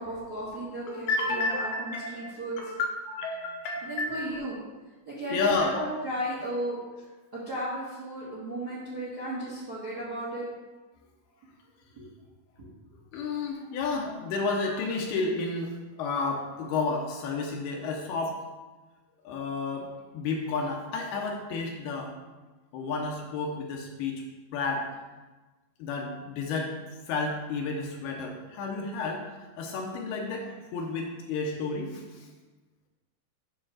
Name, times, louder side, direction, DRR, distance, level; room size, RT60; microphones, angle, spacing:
voice 1, 0.0-2.6 3.8-4.6 5.0-6.8 7.3-10.4 11.9-12.0, right 1 dB, 40° right, -7 dB, 1.4 m, -35 dB
voice 2, 0.9-4.1 5.3-5.7 13.1-15.7 16.0-18.4 19.2-22.1 22.7-24.2 24.5-24.9 25.8-26.7 27.1-29.3 29.6-32.3, left 3 dB, 75° left, 0 dB, 2.6 m, -31 dB
9.7 x 3.6 x 6.4 m, 1.2 s
omnidirectional pair, 4.9 m